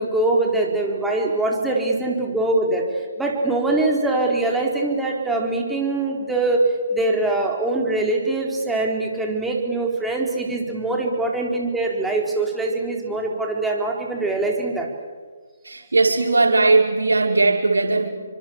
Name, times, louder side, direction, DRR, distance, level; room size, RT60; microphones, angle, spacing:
voice 1, 0.0-2.9 3.2-6.6 6.9-14.9, right 2 dB, 5° right, -1 dB, 4.5 m, -23 dB
voice 2, 15.6-18.1, right 3 dB, 90° right, 3 dB, 5.0 m, -18 dB
30.0 x 25.0 x 7.5 m, 1.5 s
figure-of-eight pair, 145°, 0 cm